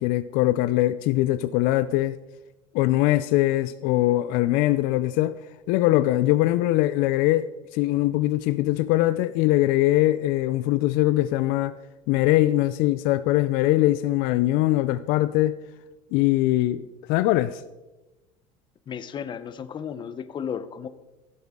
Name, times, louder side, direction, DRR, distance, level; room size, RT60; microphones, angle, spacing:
voice 1, 0.0-2.2 2.7-5.4 5.7-11.7 12.1-15.6 16.1-16.8 17.1-17.6, left 16 dB, 70° left, 0.4 m, -22 dB
voice 2, 18.9-20.9, left 7 dB, 30° left, 0.7 m, -34 dB
15.5 x 7.9 x 3.6 m
supercardioid pair, 120°, 16 cm